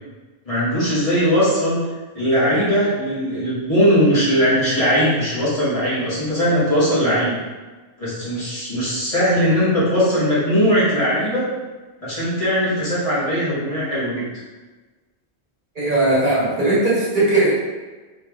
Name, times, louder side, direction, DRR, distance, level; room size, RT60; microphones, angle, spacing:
voice 1, 0.4-1.8 2.1-7.4 8.0-11.5 12.0-14.2, equal, 30° left, -11 dB, 1.5 m, -19 dB
voice 2, 15.7-17.5, right 2 dB, 45° right, -8 dB, 1.4 m, -18 dB
3.5 x 3.2 x 3.5 m, 1.3 s
omnidirectional pair, 1.1 m